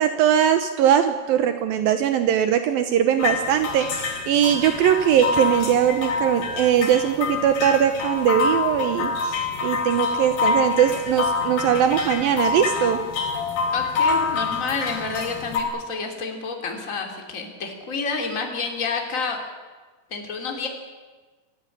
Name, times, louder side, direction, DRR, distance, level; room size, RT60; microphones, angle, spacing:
voice 1, 0.0-13.0, right 9 dB, 75° right, 8 dB, 2.8 m, -20 dB
sound 1, 3.2-15.6, left 4 dB, 80° left, 5.2 m, -26 dB
voice 2, 13.7-19.4 20.1-20.7, left 4 dB, 20° left, 3 dB, 3.0 m, -29 dB
26.5 x 14.5 x 9.9 m, 1.3 s
omnidirectional pair, 4.3 m